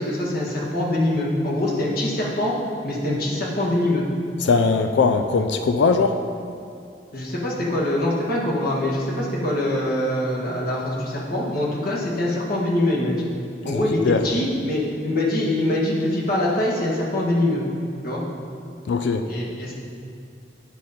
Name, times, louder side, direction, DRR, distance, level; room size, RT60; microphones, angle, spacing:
voice 1, 0.0-2.5 2.8-4.0 7.1-13.3 13.6-17.6 18.0-18.2 19.3-19.7, left 1 dB, 55° left, -5 dB, 1.5 m, -24 dB
voice 2, 4.4-6.2 14.0-14.2 18.9-19.3, left 4 dB, 70° left, 7 dB, 0.4 m, -20 dB
9.4 x 4.2 x 5.2 m, 2.5 s
head